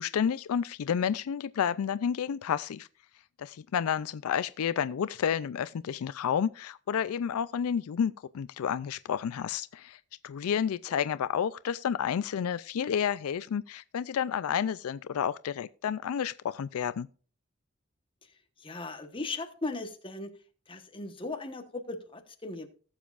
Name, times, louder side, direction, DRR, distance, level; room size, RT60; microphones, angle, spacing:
voice 1, 0.0-2.9 3.4-17.1, left 8 dB, 80° left, 0.4 m, -30 dB
voice 2, 18.6-20.3 20.7-22.7, left 3 dB, 25° left, 1.1 m, -37 dB
18.5 x 7.3 x 2.4 m
head